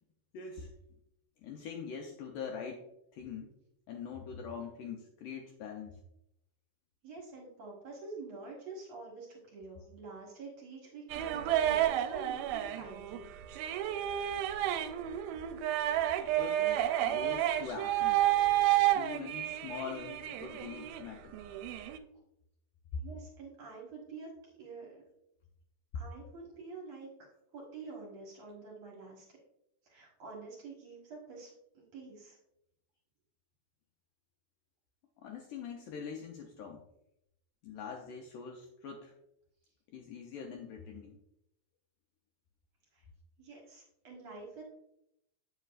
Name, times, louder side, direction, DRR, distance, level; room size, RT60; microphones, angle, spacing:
voice 1, 0.3-0.7 1.4-2.8 3.1-3.5 3.9-6.0 16.4-18.2 18.9-21.4 22.9-23.0 25.9-26.0 35.2-36.8 37.6-39.1 39.9-41.2, left 6 dB, 80° left, 1 dB, 1.9 m, -43 dB
voice 2, 7.0-13.3 23.0-25.0 25.9-29.4 29.8-32.4 42.9-43.0 43.4-44.6, right 3 dB, 55° right, -3 dB, 2.1 m, -47 dB
sound 1, 11.1-21.0 21.3-22.0, right 13 dB, 80° right, 2.3 m, -31 dB
8.1 x 7.7 x 2.5 m, 0.80 s
omnidirectional pair, 4.4 m